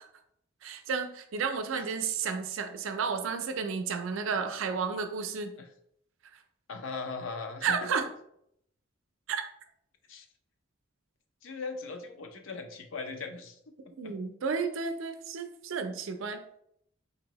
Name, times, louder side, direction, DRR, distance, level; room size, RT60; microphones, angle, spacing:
voice 1, 0.6-5.5 7.6-8.1 9.3-9.4 14.0-16.4, right 5 dB, 75° right, 7 dB, 0.4 m, -32 dB
voice 2, 6.7-8.0 10.1-10.3 11.4-13.6 14.0-14.2, left 4 dB, 75° left, 6 dB, 0.5 m, -39 dB
4.0 x 2.7 x 3.0 m, 0.71 s
head